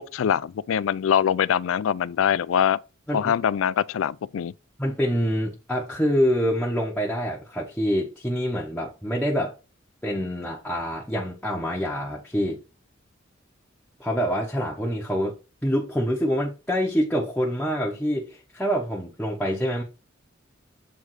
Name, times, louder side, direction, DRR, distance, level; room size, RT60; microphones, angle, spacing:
voice 1, 0.1-2.8 3.1-4.5, left 8 dB, 85° left, 0.4 m, -23 dB
voice 2, 4.8-9.5 10.0-12.6 14.0-15.3 15.6-19.8, equal, 5° left, 1.1 m, -26 dB
7.6 x 3.3 x 4.7 m
head